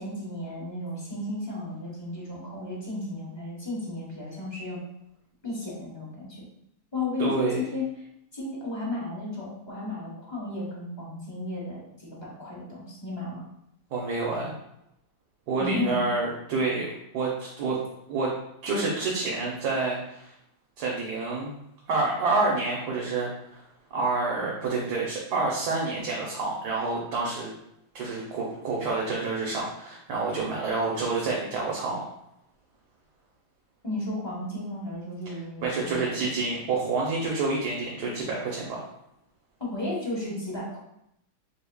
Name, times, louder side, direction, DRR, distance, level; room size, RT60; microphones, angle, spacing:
voice 1, 0.0-4.8 5.4-6.4 6.9-7.9 8.3-13.4 15.6-16.0 33.8-36.3 39.6-40.8, left 2 dB, 20° left, -4 dB, 1.0 m, -34 dB
voice 2, 7.2-7.7 13.9-14.5 15.5-16.9 17.1-17.8 18.1-18.3 18.6-20.3 20.8-21.5 21.9-23.6 23.9-27.5 27.9-32.0 35.3-35.4 35.6-38.9, right 3 dB, 70° right, -3 dB, 1.3 m, -28 dB
4.9 x 3.5 x 2.3 m, 0.78 s
omnidirectional pair, 1.8 m